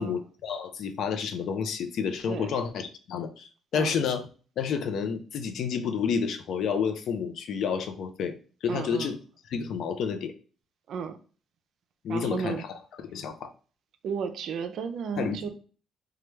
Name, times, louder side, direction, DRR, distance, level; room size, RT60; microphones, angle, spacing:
voice 1, 0.0-4.2 4.6-8.4 8.6-9.1 9.5-10.3 12.0-12.7 13.1-13.5 15.2-15.5, left 6 dB, 70° left, 7 dB, 0.5 m, -30 dB
voice 2, 8.7-9.1 10.9-11.2 12.1-12.6 14.0-15.5, right 6 dB, 70° right, 8 dB, 0.4 m, -33 dB
3.2 x 2.2 x 3.0 m, 0.39 s
cardioid pair, 90°, 0 cm